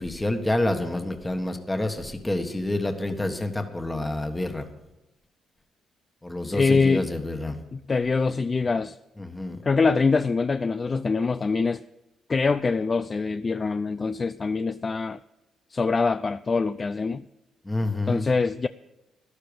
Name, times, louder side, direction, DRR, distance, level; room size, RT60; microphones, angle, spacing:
voice 1, 0.0-4.7 6.2-7.6 9.2-9.6 17.6-18.3, left 1 dB, 15° left, 1.5 m, -28 dB
voice 2, 6.4-7.1 7.7-9.0 9.6-11.8 12.3-15.2 15.7-17.2 18.1-18.7, left 4 dB, 35° left, 0.4 m, -24 dB
13.0 x 12.0 x 5.2 m
cardioid pair, 90°, 0 cm